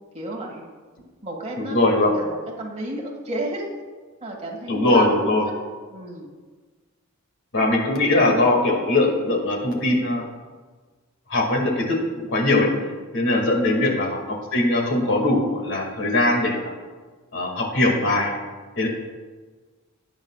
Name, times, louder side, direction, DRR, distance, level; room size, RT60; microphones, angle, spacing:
voice 1, 0.1-0.6 1.2-3.6 4.2-5.1 5.9-6.3 8.1-8.4 12.7-12.9 13.7-13.9, right 1 dB, 30° right, -2 dB, 2.0 m, -33 dB
voice 2, 1.6-2.1 4.7-5.5 7.5-10.3 11.3-12.0 12.3-12.7 13.1-16.6 17.3-18.3 18.8-18.9, left 2 dB, 60° left, 0 dB, 2.3 m, -21 dB
19.0 x 8.8 x 2.4 m, 1.4 s
head